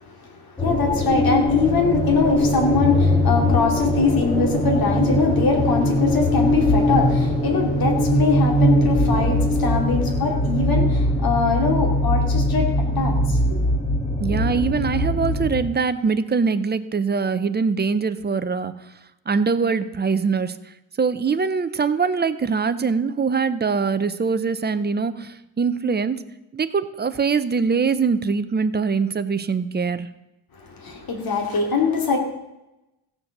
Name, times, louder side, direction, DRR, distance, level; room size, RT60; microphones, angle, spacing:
voice 1, 0.2-13.6 30.7-32.2, left 4 dB, 45° left, 2 dB, 2.7 m, -23 dB
sound 1, 0.6-15.7, equal, 15° left, 1.5 m, -21 dB
voice 2, 14.2-18.7 19.3-20.6 21.0-26.2 26.5-30.1, right 5 dB, 20° right, 12 dB, 0.5 m, -23 dB
15.5 x 7.3 x 6.6 m, 0.96 s
cardioid pair, 155°, 47 cm